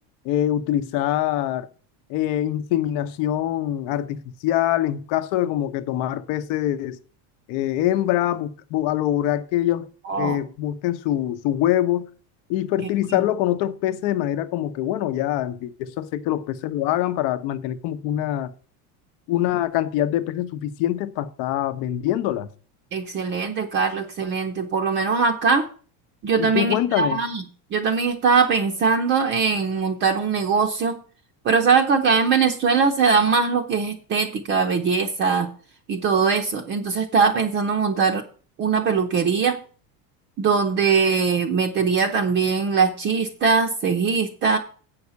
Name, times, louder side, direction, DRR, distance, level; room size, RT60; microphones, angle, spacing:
voice 1, 0.2-1.7 2.1-7.0 7.5-9.9 10.2-12.1 12.5-18.5 19.3-22.5 26.4-27.2, left 12 dB, 50° left, 0.9 m, -24 dB
voice 2, 10.0-10.4 22.9-25.7 26.2-27.4 27.7-31.0 31.4-35.5 35.9-38.2 38.6-39.6 40.4-44.6, right 5 dB, 25° right, 0.7 m, -21 dB
8.5 x 5.8 x 8.1 m
cardioid pair, 175°, 44 cm